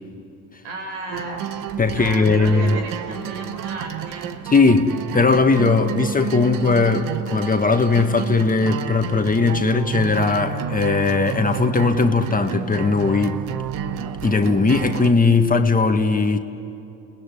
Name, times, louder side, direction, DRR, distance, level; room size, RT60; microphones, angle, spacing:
voice 1, 0.6-1.5 1.9-4.4, right 2 dB, 85° right, 3 dB, 4.9 m, -34 dB
sound 1, 1.1-15.1, right 9 dB, 65° right, 1.2 m, -30 dB
voice 2, 1.8-2.8 4.5-13.4 14.2-16.4, left 4 dB, 25° left, 6 dB, 1.8 m, -18 dB
30.0 x 20.0 x 9.9 m, 2.7 s
hypercardioid pair, 65°, 35 cm